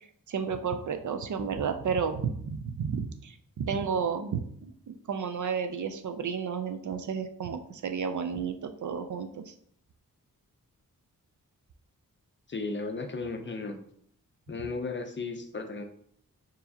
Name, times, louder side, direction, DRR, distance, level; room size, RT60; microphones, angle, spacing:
voice 1, 0.3-4.4 4.9-9.5, right 6 dB, 60° right, 7 dB, 0.5 m, -32 dB
voice 2, 12.5-13.7 14.5-15.8, left 3 dB, 35° left, 5 dB, 0.5 m, -35 dB
4.6 x 3.1 x 2.7 m, 0.64 s
wide cardioid pair, 120°, 35 cm